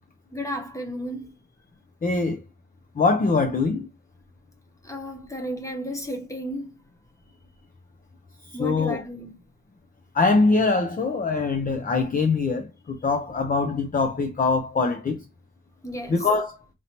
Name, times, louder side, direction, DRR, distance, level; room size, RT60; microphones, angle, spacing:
voice 1, 0.3-1.3 4.8-6.7 8.5-9.3 15.8-16.3, equal, 10° left, 0.9 m, -33 dB
voice 2, 2.0-2.4 3.0-3.9 8.5-9.0 10.1-15.2 16.1-16.6, left 3 dB, 30° left, 0.5 m, -23 dB
4.4 x 2.6 x 2.9 m
wide cardioid pair, 145°, 30 cm